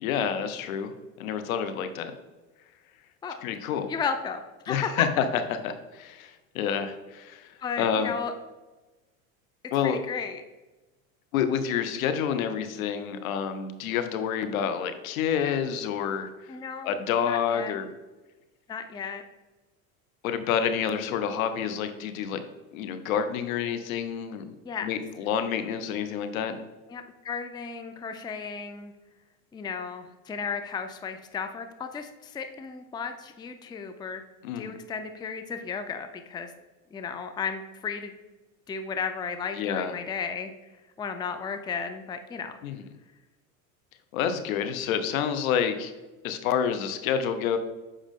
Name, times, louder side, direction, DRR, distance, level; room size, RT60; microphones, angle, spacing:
voice 1, 0.0-2.1 3.4-3.9 4.7-5.2 5.5-8.1 9.7-10.0 11.3-16.5 16.8-17.9 20.2-22.4 22.7-24.5 24.8-26.5 34.4-34.7 39.6-39.9 42.6-42.8 44.1-45.9 46.2-47.6, left 8 dB, 75° left, 9 dB, 0.9 m, -28 dB
voice 2, 3.9-5.0 7.6-8.3 9.8-10.4 16.5-17.7 18.7-19.2 24.7-24.9 26.9-28.9 29.5-34.2 34.6-36.5 36.9-38.1 38.7-40.5 41.0-42.6, left 6 dB, 10° left, 8 dB, 0.4 m, -34 dB
7.4 x 4.9 x 3.7 m, 1.1 s
hypercardioid pair, 95°, 42 cm